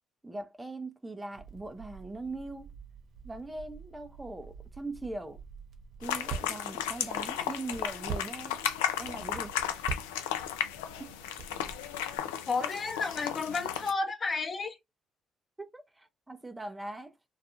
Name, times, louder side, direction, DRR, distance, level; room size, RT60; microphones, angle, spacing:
voice 1, 0.2-2.7 3.2-5.4 6.0-8.6 9.0-9.5 11.0-11.1 15.6-17.1, right 2 dB, 15° right, 0.4 m, -41 dB
Crackle, 1.3-12.2, right 5 dB, 60° right, 0.8 m, -45 dB
sound 1, 6.0-13.9, left 10 dB, 85° left, 0.3 m, -34 dB
voice 2, 12.4-14.8, left 4 dB, 40° left, 0.7 m, -32 dB
2.3 x 2.3 x 2.9 m
hypercardioid pair, 50°, 0 cm